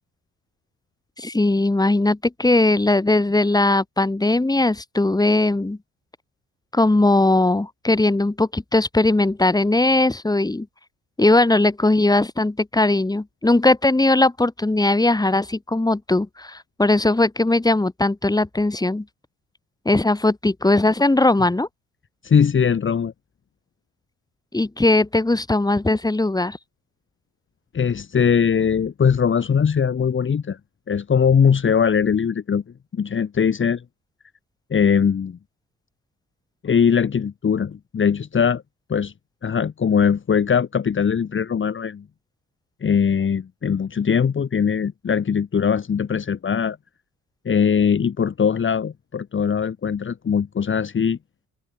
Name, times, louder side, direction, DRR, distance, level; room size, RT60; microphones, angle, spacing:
voice 1, 1.2-5.8 6.7-10.7 11.2-19.0 19.9-21.7 24.5-26.6, left 2 dB, 15° left, 3.9 m, -19 dB
voice 2, 22.2-23.1 27.7-30.6 30.9-32.6 32.9-33.8 34.7-35.4 36.6-38.6 38.9-39.1 39.4-42.0 42.8-46.8 47.5-51.2, left 7 dB, 40° left, 2.0 m, -20 dB
cardioid pair, 90°, 30 cm